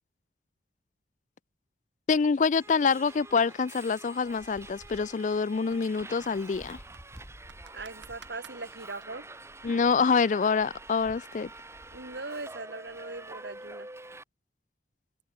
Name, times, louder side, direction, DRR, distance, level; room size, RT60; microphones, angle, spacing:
voice 1, 2.1-6.8 9.6-11.5, left 5 dB, 45° left, 0.4 m, -26 dB
Subway metro underground, 2.6-14.2, right 2 dB, 15° right, 3.9 m, -47 dB
sound 1, 2.9-9.1, right 6 dB, 85° right, 5.2 m, -56 dB
voice 2, 7.7-9.3 11.9-13.9, right 3 dB, 70° right, 3.7 m, -40 dB
head